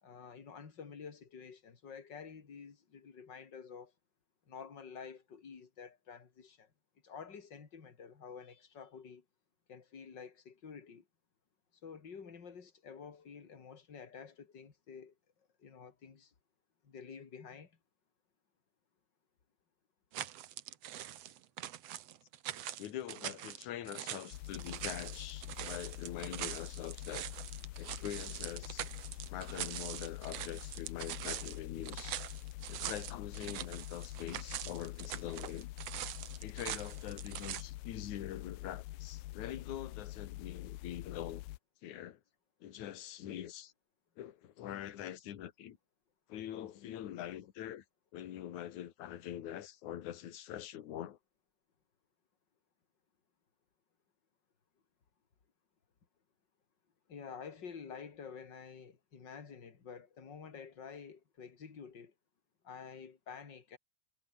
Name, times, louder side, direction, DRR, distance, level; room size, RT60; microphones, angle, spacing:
voice 1, 0.0-3.9 4.5-6.7 7.0-9.2 9.7-11.1 11.8-15.1 15.6-16.3 16.8-17.8 57.1-62.1 62.6-63.8, left 6 dB, 30° left, 2.7 m, -50 dB
sound 1, 20.1-37.6, right 12 dB, 85° right, 1.4 m, -43 dB
voice 2, 22.8-27.3 27.8-28.9 29.3-32.2 32.7-35.7 36.4-41.4 41.8-42.2 42.6-43.7 44.2-45.8 46.3-47.8 48.1-51.2, left 11 dB, 55° left, 2.7 m, -44 dB
sound 2, 24.3-41.6, left 18 dB, 85° left, 2.0 m, -46 dB
omnidirectional pair, 4.6 m